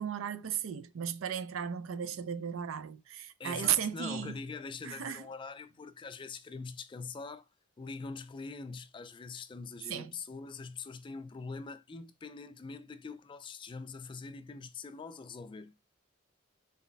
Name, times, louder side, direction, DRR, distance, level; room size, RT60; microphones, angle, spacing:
voice 1, 0.0-4.4 4.8-5.2 9.9-10.1, right 9 dB, 85° right, 0.4 m, -35 dB
voice 2, 3.4-7.5 7.8-15.8, left 4 dB, 25° left, 0.3 m, -43 dB
4.1 x 2.2 x 3.9 m
head